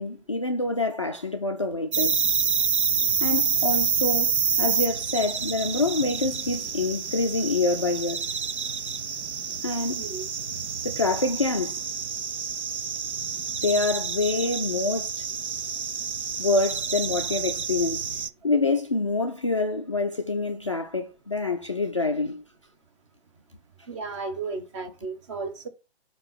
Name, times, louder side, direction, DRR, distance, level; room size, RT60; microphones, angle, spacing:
voice 1, 0.0-2.2 3.2-8.3 9.6-10.0 10.8-11.8 13.6-15.2 16.4-22.4, left 3 dB, 30° left, 0.3 m, -26 dB
sound 1, 1.9-18.3, right 6 dB, 80° right, 0.6 m, -28 dB
voice 2, 23.9-25.7, right 4 dB, 25° right, 1.1 m, -34 dB
7.2 x 2.9 x 5.9 m
figure-of-eight pair, 135°, 34 cm